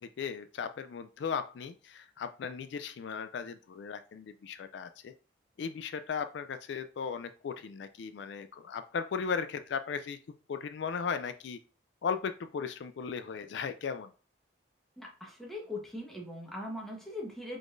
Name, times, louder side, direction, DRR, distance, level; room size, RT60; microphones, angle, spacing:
voice 1, 0.0-5.1 5.6-10.2 10.5-11.6 12.0-14.1, left 6 dB, 70° left, 10 dB, 0.3 m, -37 dB
voice 2, 15.0-17.6, left 1 dB, ahead, -2 dB, 1.1 m, -40 dB
4.9 x 3.9 x 2.6 m, 0.37 s
head